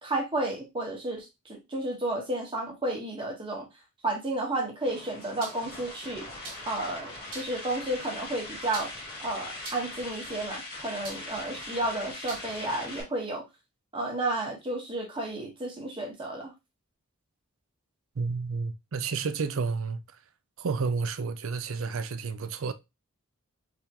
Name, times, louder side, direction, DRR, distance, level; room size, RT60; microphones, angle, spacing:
voice 1, 0.0-3.7 4.0-6.3 6.7-8.9 9.2-13.4 13.9-16.5, right 2 dB, 25° right, 1.2 m, -32 dB
sound 1, 4.9-13.0, left 2 dB, 40° left, 1.9 m, -41 dB
sound 2, 5.4-5.7 6.4-6.8 7.3-7.6 8.7-9.2 9.6-10.0 11.0-11.4 12.3-12.5, right 3 dB, 40° right, 1.6 m, -42 dB
voice 2, 18.2-20.0 20.6-22.7, right 4 dB, 65° right, 0.5 m, -31 dB
3.6 x 3.5 x 2.8 m
head